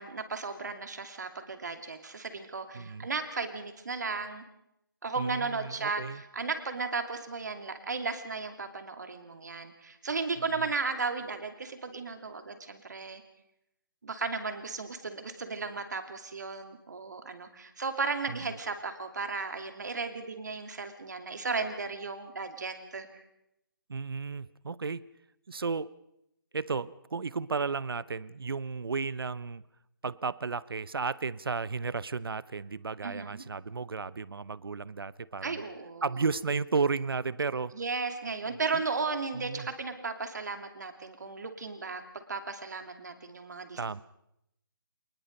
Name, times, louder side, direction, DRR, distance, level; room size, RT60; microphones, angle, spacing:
voice 1, 0.0-4.4 5.0-13.2 14.0-23.2 33.0-33.4 35.4-36.2 37.7-43.8, right 4 dB, 50° right, 7 dB, 2.7 m, -35 dB
voice 2, 2.7-3.1 5.2-6.2 10.6-10.7 18.3-18.4 23.9-25.1 25.5-25.9 26.5-29.6 30.0-35.6 36.0-37.7 39.3-39.7 43.8-44.0, right 4 dB, 75° right, 19 dB, 0.9 m, -33 dB
26.5 x 20.0 x 5.3 m, 0.82 s
hypercardioid pair, 180°, 12 cm